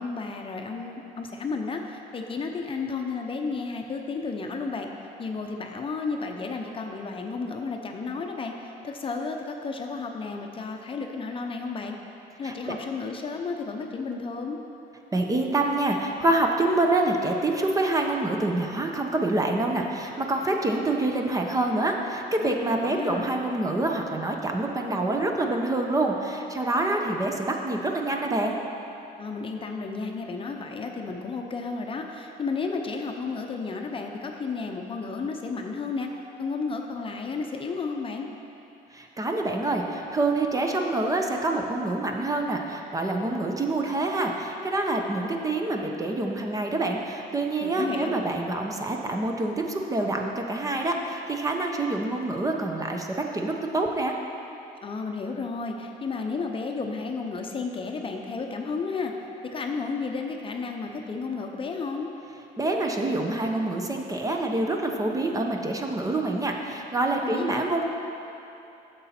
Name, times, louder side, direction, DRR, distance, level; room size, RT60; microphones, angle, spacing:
voice 1, 0.0-4.9 5.2-12.0 12.4-14.6 22.4-22.5 22.9-23.3 29.2-36.1 36.4-38.3 47.6-48.1 54.8-59.1 59.4-62.1 67.2-67.7, left 4 dB, 30° left, 3 dB, 0.7 m, -32 dB
voice 2, 12.4-12.7 15.1-28.6 38.9-54.2 62.6-67.8, right 2 dB, 20° right, 2 dB, 0.7 m, -26 dB
8.9 x 6.9 x 4.3 m, 2.9 s
cardioid pair, 110°, 17 cm